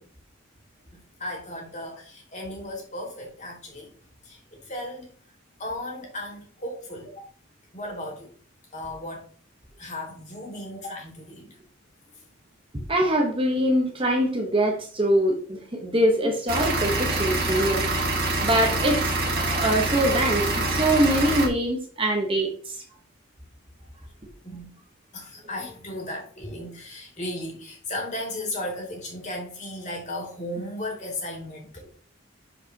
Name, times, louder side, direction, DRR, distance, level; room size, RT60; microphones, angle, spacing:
voice 1, 0.9-3.9 4.2-5.1 5.6-7.2 7.7-8.3 8.7-9.2 9.8-11.6 24.4-24.7 25.1-31.8, left 1 dB, 35° left, 2.7 m, -35 dB
voice 2, 12.9-17.8 18.4-19.0 19.3-22.5, right 1 dB, 25° right, 1.1 m, -23 dB
sound 1, 16.5-21.5, right 2 dB, 45° right, 2.4 m, -25 dB
11.0 x 5.0 x 2.9 m
head